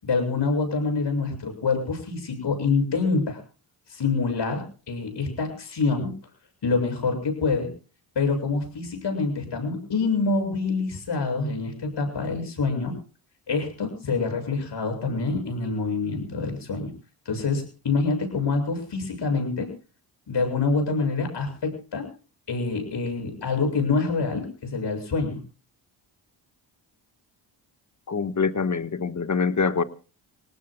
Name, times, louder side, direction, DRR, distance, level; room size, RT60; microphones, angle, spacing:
voice 1, 0.0-3.4 3.9-6.1 6.6-7.7 8.2-13.0 13.5-16.9 17.3-19.7 20.3-22.1 22.5-25.4, left 4 dB, 60° left, 5 dB, 7.4 m, -26 dB
voice 2, 28.1-29.8, left 5 dB, 35° left, 11 dB, 1.5 m, -25 dB
28.0 x 18.5 x 2.3 m, 0.37 s
supercardioid pair, 55°, 48 cm